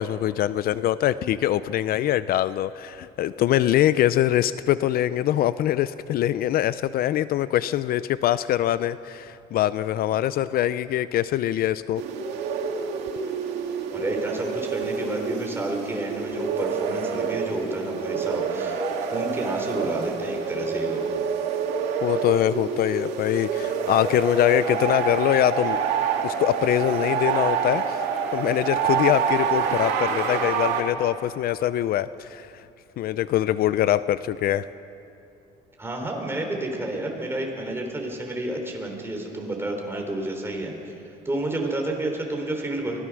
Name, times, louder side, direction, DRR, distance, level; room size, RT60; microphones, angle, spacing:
voice 1, 0.0-12.0 22.0-25.8 26.2-27.8 28.3-32.5 33.0-34.7, left 12 dB, 65° left, 15 dB, 0.5 m, -23 dB
sound 1, 12.0-30.8, right 6 dB, 85° right, 2.3 m, -27 dB
voice 2, 13.9-18.8 19.1-21.0 35.8-40.7 41.2-43.0, right 1 dB, 15° right, 1 dB, 4.2 m, -30 dB
24.0 x 18.0 x 6.3 m, 2.8 s
cardioid pair, 110°, 17 cm